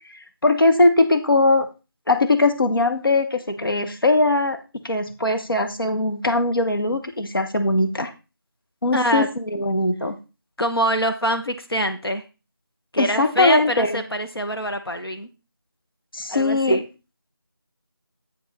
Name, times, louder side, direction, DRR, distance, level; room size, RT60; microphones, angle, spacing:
voice 1, 0.1-1.7 2.1-4.6 4.8-8.1 8.8-10.2 13.0-14.0 16.1-16.8, left 2 dB, 65° left, 7 dB, 1.2 m, -20 dB
voice 2, 8.9-9.3 10.6-12.2 12.9-15.3 16.3-16.9, equal, 85° left, 7 dB, 1.2 m, -24 dB
8.9 x 5.2 x 4.1 m, 0.30 s
figure-of-eight pair, 170°, 12 cm